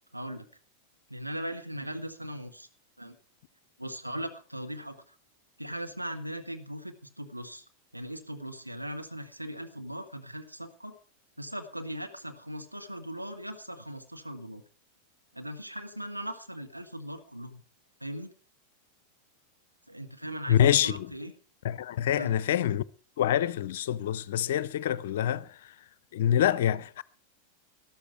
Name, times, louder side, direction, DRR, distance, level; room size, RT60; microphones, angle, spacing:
voice 1, 0.1-0.5 1.1-2.7 3.0-3.2 3.8-5.1 5.6-7.6 7.9-11.0 11.4-14.6 15.3-17.6 18.0-18.3 19.9-21.3 22.1-22.3, equal, 90° right, 1.4 m, -39 dB
voice 2, 20.5-21.1 21.6-22.9 23.2-25.7 26.1-27.0, left 10 dB, 55° left, 0.6 m, -26 dB
13.0 x 12.5 x 4.6 m
figure-of-eight pair, 90°, 0 cm